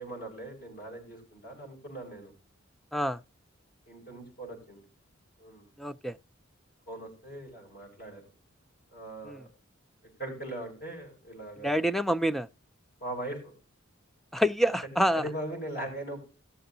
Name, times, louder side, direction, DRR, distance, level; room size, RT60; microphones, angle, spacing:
voice 1, 0.0-2.3 3.9-4.8 5.4-5.7 6.9-8.2 8.9-9.5 10.2-11.7 13.0-13.5 15.1-16.2, right 1 dB, 50° left, 5.5 m, -40 dB
voice 2, 5.8-6.2 9.3-9.4 11.6-12.5 14.3-15.2, equal, ahead, 0.4 m, -27 dB
18.5 x 6.9 x 2.7 m
head